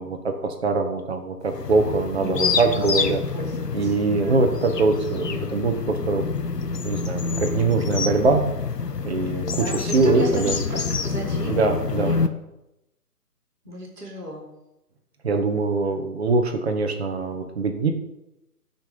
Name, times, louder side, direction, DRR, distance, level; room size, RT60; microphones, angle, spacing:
voice 1, 0.0-3.2 3.7-6.3 6.8-8.4 9.0-10.6 11.4-12.2 15.2-17.9, right 3 dB, 40° right, 5 dB, 1.7 m, -23 dB
sound 1, 1.5-12.3, left 5 dB, 85° left, 1.2 m, -27 dB
voice 2, 2.2-4.4 9.2-11.6 11.9-12.2 13.6-14.4, right 1 dB, 5° left, -19 dB, 0.8 m, -34 dB
15.0 x 6.1 x 7.0 m, 0.92 s
hypercardioid pair, 165°, 47 cm